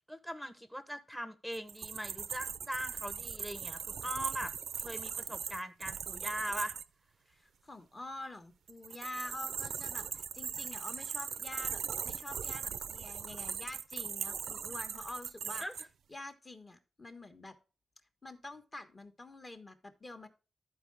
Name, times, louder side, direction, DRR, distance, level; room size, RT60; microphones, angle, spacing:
voice 1, 0.1-6.8 15.6-15.7, equal, 5° left, 1.0 m, -41 dB
sound 1, 1.5-6.8 8.7-15.8, right 7 dB, 80° right, 0.5 m, -40 dB
voice 2, 7.3-15.6 16.1-17.6 18.2-20.3, left 2 dB, 25° left, 1.4 m, -47 dB
13.0 x 4.7 x 3.4 m
wide cardioid pair, 110°, 0 cm